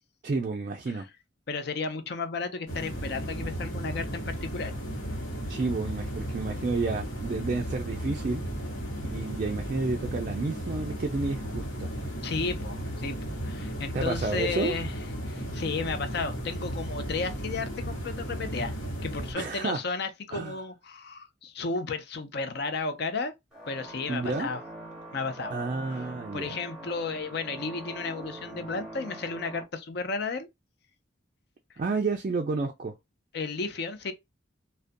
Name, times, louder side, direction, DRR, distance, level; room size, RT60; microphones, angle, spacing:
voice 1, 0.2-1.1 5.5-8.4 9.1-11.9 13.9-14.8 19.3-19.8 20.3-20.6 24.1-24.5 25.5-26.6 31.8-32.9, right 3 dB, 40° right, 0.3 m, -30 dB
voice 2, 1.5-4.7 12.2-13.2 13.4-14.9 15.3-18.7 19.0-23.3 23.7-24.6 25.1-25.5 25.9-30.5 33.3-34.1, left 4 dB, 55° left, 0.5 m, -33 dB
sound 1, 2.7-19.3, equal, 75° left, 1.1 m, -35 dB
sound 2, 23.5-29.6, right 1 dB, 5° right, 0.8 m, -43 dB
2.4 x 2.2 x 2.5 m
head